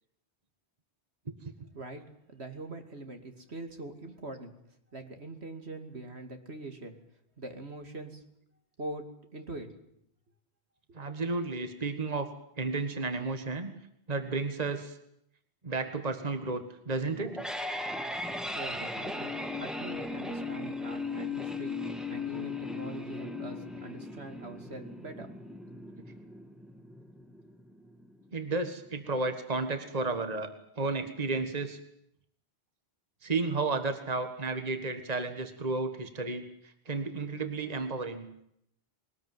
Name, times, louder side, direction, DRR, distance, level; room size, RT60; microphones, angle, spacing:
voice 1, 2.3-4.5 4.9-7.0 7.4-8.2 8.8-9.1 9.3-9.7 10.9-11.0 18.5-21.8 22.1-25.3, right 2 dB, 70° right, 6 dB, 2.9 m, -43 dB
voice 2, 10.9-12.3 12.6-13.7 14.1-15.0 15.6-17.4 26.0-26.1 28.3-30.5 30.8-31.8 33.2-38.3, right 3 dB, 35° right, 8 dB, 1.8 m, -32 dB
sound 1, 17.1-28.1, left 3 dB, ahead, 1.5 m, -37 dB
21.5 x 20.0 x 9.4 m, 0.75 s
omnidirectional pair, 1.1 m